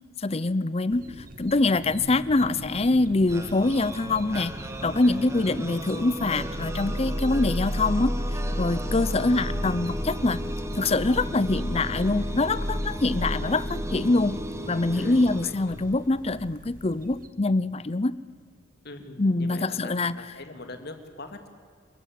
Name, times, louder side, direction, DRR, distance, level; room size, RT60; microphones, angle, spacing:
voice 1, 0.2-1.0 1.4-4.5 4.8-8.1 8.6-10.4 10.8-14.4 14.7-18.1 19.2-20.2, left 2 dB, 30° left, 17 dB, 0.6 m, -24 dB
sound 1, 0.9-17.3, right 1 dB, 45° right, 1.5 m, -43 dB
sound 2, 3.3-16.2, right 1 dB, 15° right, 1.7 m, -37 dB
voice 2, 5.0-5.7 7.3-7.6 9.0-9.3 14.9-15.9 18.8-21.5, left 2 dB, 55° left, 7 dB, 2.3 m, -43 dB
sound 3, 6.1-15.2, equal, 80° left, 5.4 m, -32 dB
28.0 x 14.5 x 9.4 m, 2.1 s
head